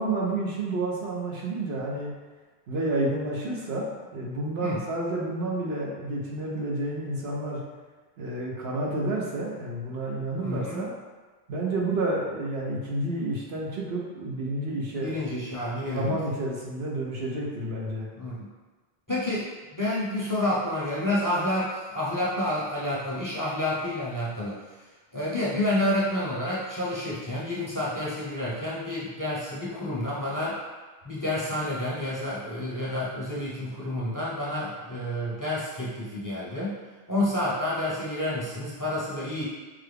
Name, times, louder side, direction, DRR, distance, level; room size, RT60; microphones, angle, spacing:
voice 1, 0.0-2.1 2.7-7.6 8.2-11.0 11.5-15.2 15.8-18.1, right 2 dB, 75° right, -3 dB, 1.1 m, -30 dB
voice 2, 10.4-10.8 15.0-16.2 18.2-18.5 19.1-19.5 19.7-24.5 25.1-30.6 31.0-36.8 37.1-39.4, left 1 dB, 20° left, -8 dB, 0.7 m, -29 dB
5.5 x 2.2 x 3.4 m, 1.3 s
omnidirectional pair, 1.1 m